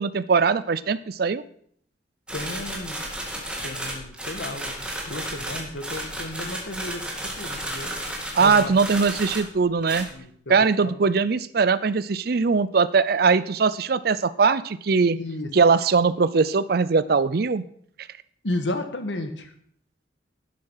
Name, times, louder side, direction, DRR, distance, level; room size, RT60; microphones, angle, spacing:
voice 1, 0.0-1.4 8.4-10.1 10.5-15.2 15.5-17.6, right 5 dB, 55° right, 16 dB, 0.5 m, -21 dB
voice 2, 2.3-3.0 3.6-7.9 8.4-8.8 10.1-11.0 15.1-15.5 18.4-19.5, left 1 dB, 80° left, 7 dB, 1.5 m, -33 dB
sound 1, 2.3-9.6 9.8-10.1, right 1 dB, 5° right, 2.1 m, -33 dB
11.0 x 7.8 x 5.6 m, 0.63 s
head